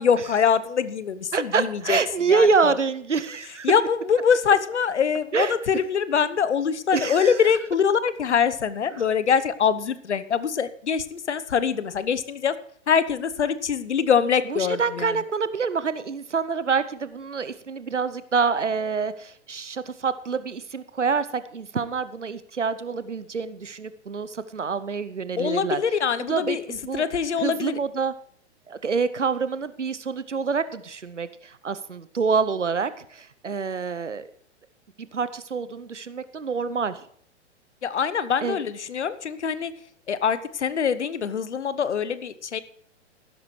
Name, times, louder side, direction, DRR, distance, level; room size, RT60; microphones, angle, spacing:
voice 1, 0.0-2.0 2.3-2.8 3.6-12.5 12.9-15.2 25.4-26.6 26.9-27.8 37.8-39.7 40.1-42.6, left 7 dB, 70° left, 15 dB, 1.0 m, -24 dB
voice 2, 1.3-3.7 5.3-5.6 6.9-7.5 8.9-9.1 14.5-25.8 26.3-27.0 27.4-28.1 28.7-34.3 35.1-37.1 38.4-38.6, right 5 dB, 90° right, 14 dB, 0.8 m, -26 dB
15.5 x 12.5 x 3.2 m, 0.64 s
figure-of-eight pair, 110°, 35 cm